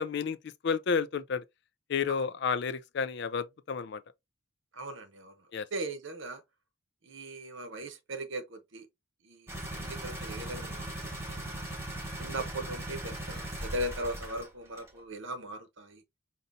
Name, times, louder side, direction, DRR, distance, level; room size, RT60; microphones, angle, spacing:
voice 1, 0.0-1.4 1.9-4.0 5.5-5.7, left 5 dB, 55° left, 0.4 m, -31 dB
voice 2, 4.7-6.4 7.0-8.9 9.2-11.6 12.2-16.0, right 1 dB, 65° right, 0.8 m, -39 dB
sound 1, 9.5-14.5 14.8-14.9, right 1 dB, 15° right, 1.2 m, -39 dB
5.4 x 2.7 x 2.6 m
head